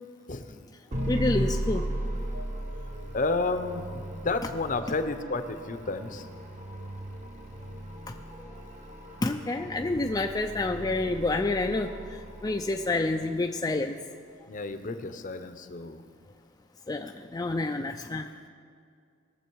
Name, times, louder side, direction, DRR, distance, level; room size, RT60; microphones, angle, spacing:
sound 1, 0.9-13.1, right 1 dB, 40° right, 1.1 m, -36 dB
voice 1, 1.1-1.9 8.4-8.5 9.2-13.9 16.9-18.3, left 2 dB, 20° left, 3 dB, 0.4 m, -28 dB
voice 2, 3.1-6.3 14.5-16.0, left 3 dB, 45° left, 9 dB, 0.7 m, -31 dB
20.0 x 7.3 x 4.6 m, 2.3 s
head